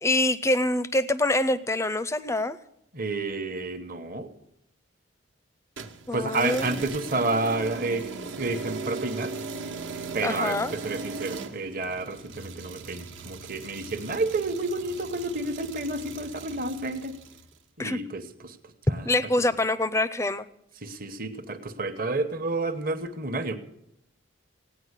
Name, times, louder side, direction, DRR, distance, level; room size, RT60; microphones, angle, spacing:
voice 1, 0.0-2.6 6.1-6.9 10.2-10.7 17.8-18.0 18.9-20.5, left 1 dB, 15° left, 16 dB, 0.5 m, -25 dB
voice 2, 2.9-4.3 6.1-8.0 8.4-9.3 10.1-17.2 17.8-18.6 18.9-19.1 20.8-23.6, right 2 dB, 45° right, 8 dB, 1.1 m, -30 dB
sound 1, 5.8-17.5, right 4 dB, 70° right, 1.2 m, -38 dB
16.5 x 9.6 x 8.1 m, 0.78 s
head